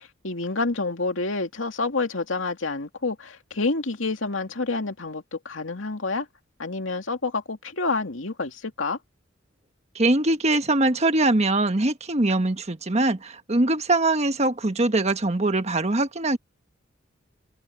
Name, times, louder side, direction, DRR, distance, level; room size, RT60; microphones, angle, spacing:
voice 1, 0.0-6.3 6.6-9.0, left 3 dB, 85° left, 2.5 m, -28 dB
voice 2, 9.9-16.4, right 2 dB, 35° right, 1.4 m, -22 dB
open air
head